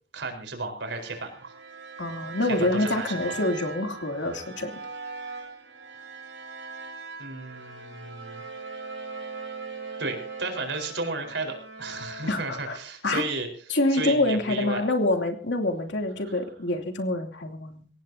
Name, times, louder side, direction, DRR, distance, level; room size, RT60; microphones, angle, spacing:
voice 1, 0.1-1.5 2.5-3.4 7.2-8.4 10.0-13.5 13.9-14.8 16.3-16.4, right 3 dB, 70° right, 5 dB, 4.5 m, -33 dB
sound 1, 0.9-12.7, right 4 dB, 90° right, 7.3 m, -40 dB
voice 2, 2.0-4.7 12.3-12.8 13.0-13.2 13.7-17.9, left 2 dB, 70° left, 4 dB, 2.9 m, -26 dB
23.5 x 17.5 x 2.8 m, 0.41 s
head